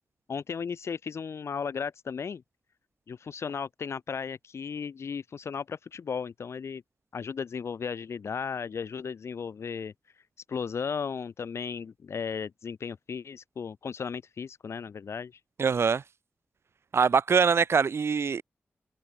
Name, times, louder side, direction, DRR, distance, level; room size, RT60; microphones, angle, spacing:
voice 1, 0.3-2.4 3.1-6.8 7.1-9.9 10.5-15.3, left 6 dB, 80° left, 3.9 m, -35 dB
voice 2, 15.6-16.0 16.9-18.4, right 5 dB, 70° right, 0.8 m, -23 dB
open air
cardioid pair, 50°, 5 cm